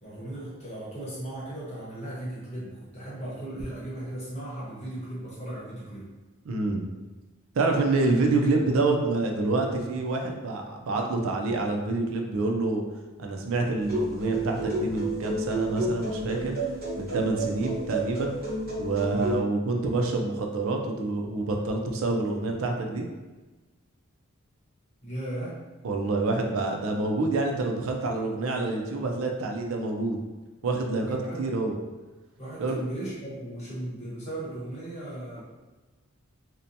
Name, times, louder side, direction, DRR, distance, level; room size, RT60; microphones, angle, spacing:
voice 1, 0.0-6.0 18.9-19.4 25.0-25.6 31.1-31.4 32.4-35.4, right 1 dB, 30° left, -8 dB, 0.9 m, -37 dB
voice 2, 6.5-6.8 7.5-12.8 13.2-16.6 17.0-18.3 18.8-23.1 25.8-30.2 30.6-31.8 32.6-32.8, right 3 dB, 65° right, 2 dB, 0.4 m, -27 dB
sound 1, 13.8-19.4, right 1 dB, 45° right, 1.0 m, -31 dB
2.7 x 2.1 x 2.6 m, 1.2 s
head